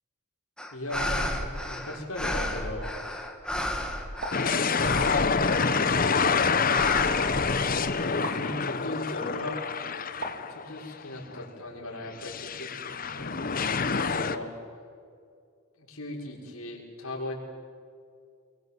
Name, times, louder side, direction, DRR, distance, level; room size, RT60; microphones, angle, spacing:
sound 1, 0.6-6.1 6.7-8.1, left 1 dB, 5° left, 2.2 m, -33 dB
voice 1, 0.7-2.9 5.1-6.1 8.0-9.6 10.5-14.5 15.8-17.3, left 1 dB, 70° left, -1 dB, 6.0 m, -38 dB
sound 2, 4.2-4.5 6.2-6.6 8.2-8.5 10.2-10.5, right 1 dB, 55° right, 3.6 m, -36 dB
sound 3, 4.3-10.9 11.3-11.4 12.2-14.4, left 5 dB, 40° left, 1.0 m, -27 dB
29.0 x 22.5 x 7.9 m, 2.3 s
head